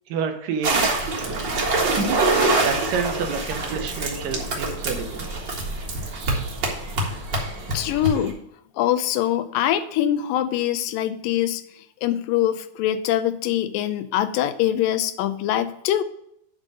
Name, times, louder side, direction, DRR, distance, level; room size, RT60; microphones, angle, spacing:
voice 1, 0.1-0.9 2.6-5.2, right 6 dB, 75° right, 5 dB, 2.6 m, -29 dB
sound 1, 0.6-8.3, right 2 dB, 45° right, 1.7 m, -25 dB
voice 2, 7.7-8.4 8.8-11.6 12.0-16.0, left 11 dB, 80° left, 12 dB, 2.2 m, -23 dB
9.7 x 3.9 x 6.3 m, 0.75 s
omnidirectional pair, 4.0 m